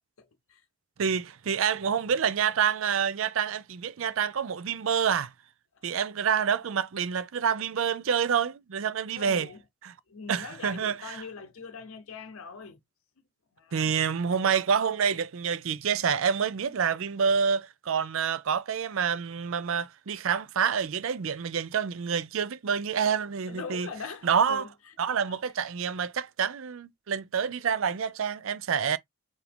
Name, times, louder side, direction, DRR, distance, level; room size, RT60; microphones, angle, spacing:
voice 1, 0.2-0.6 5.7-5.8 9.1-9.6 10.1-12.8 13.6-14.0 23.5-24.7 25.2-25.3, left 5 dB, 75° left, 0.7 m, -42 dB
voice 2, 1.0-5.3 5.8-9.5 9.8-9.9 10.3-11.2 13.7-23.9 24.2-24.7 25.0-29.0, right 7 dB, 70° right, 0.4 m, -27 dB
4.8 x 2.6 x 3.3 m
head